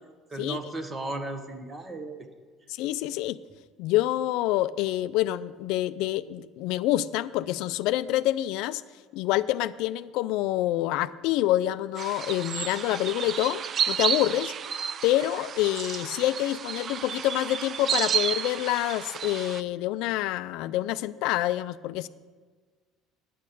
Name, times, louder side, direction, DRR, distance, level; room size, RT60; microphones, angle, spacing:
voice 1, 0.3-2.3, right 2 dB, 25° right, 8 dB, 1.2 m, -35 dB
voice 2, 2.8-3.4 3.8-8.8 9.1-13.6 13.9-14.5 15.0-22.1, left 15 dB, 75° left, 14 dB, 0.3 m, -27 dB
sound 1, 12.0-19.6, right 8 dB, 40° right, 0.3 m, -31 dB
9.2 x 8.5 x 6.8 m, 1.4 s
cardioid pair, 115°, 0 cm